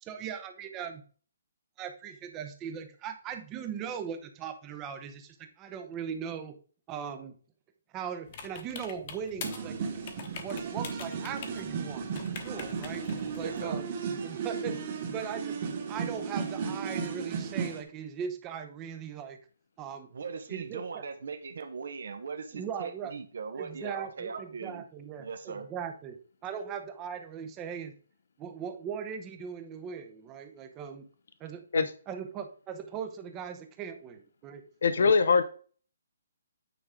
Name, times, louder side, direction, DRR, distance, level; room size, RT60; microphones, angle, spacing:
voice 1, 0.0-1.0 1.8-6.6 6.9-7.3 7.9-9.8 10.4-13.1 13.3-13.9 14.2-14.8 15.1-15.6 15.9-19.4 19.8-20.1 20.5-21.0 22.5-23.1 23.6-27.9 28.4-31.1 31.4-34.6 35.0-35.1, right 7 dB, 15° right, 7 dB, 0.7 m, -39 dB
sound 1, 8.3-13.7, left 6 dB, 30° left, 1.1 m, -45 dB
sound 2, 9.4-17.8, right 6 dB, 30° right, 1.6 m, -35 dB
voice 2, 13.3-13.8 20.1-24.8 25.2-25.7, right 5 dB, 60° right, 8 dB, 1.0 m, -39 dB
voice 3, 34.8-35.4, left 5 dB, 65° left, 11 dB, 0.7 m, -22 dB
9.1 x 4.7 x 3.7 m, 0.42 s
hypercardioid pair, 170°, 0 cm